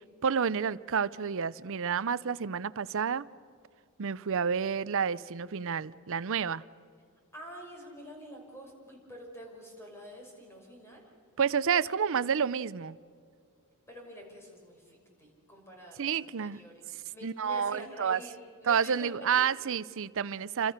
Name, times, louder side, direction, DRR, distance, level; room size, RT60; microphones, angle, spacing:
voice 1, 0.2-3.3 4.0-6.6 11.4-13.0 16.0-16.6 17.2-18.2 18.7-20.7, right 7 dB, 60° right, 17 dB, 0.6 m, -29 dB
voice 2, 7.3-11.0 13.9-19.4, equal, 10° left, 0 dB, 5.9 m, -47 dB
29.0 x 26.5 x 6.5 m, 2.3 s
head